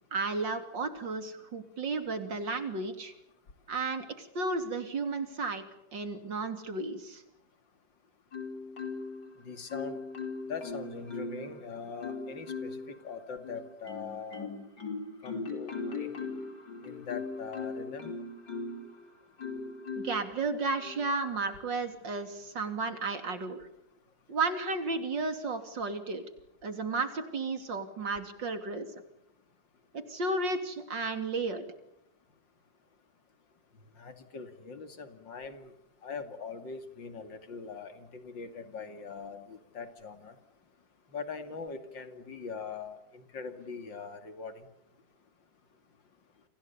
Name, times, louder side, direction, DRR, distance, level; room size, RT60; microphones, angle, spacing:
voice 1, 0.1-3.1 3.7-5.6 5.9-7.2 20.0-23.7 24.3-26.2 26.6-28.9 29.9-31.6, right 3 dB, 90° right, 8 dB, 3.6 m, -33 dB
Marimba xylophone, 8.3-9.3 9.7-11.5 12.0-12.9 13.4-18.9 19.4-20.3 20.8-21.1, left 4 dB, 65° left, 5.2 m, -39 dB
voice 2, 9.4-10.0 10.5-14.5 15.2-16.1 16.8-18.2 34.0-35.7 36.0-40.3 41.1-44.7, left 5 dB, 90° left, 9 dB, 3.1 m, -42 dB
30.0 x 26.0 x 7.1 m, 0.78 s
omnidirectional pair, 1.9 m